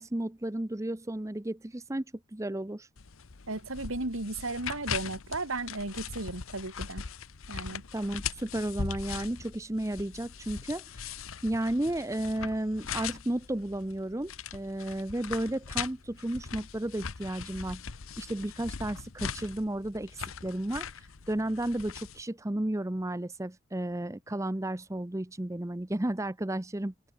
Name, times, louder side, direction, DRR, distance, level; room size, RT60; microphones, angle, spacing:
voice 1, 0.0-2.0 2.3-2.9 7.9-11.1 11.4-17.8 18.2-26.9, right 1 dB, 15° right, 0.6 m, -33 dB
sound 1, 3.0-22.2, left 6 dB, 80° left, 1.0 m, -40 dB
voice 2, 3.5-7.0 7.5-7.8, right 2 dB, 80° right, 3.1 m, -35 dB
open air
head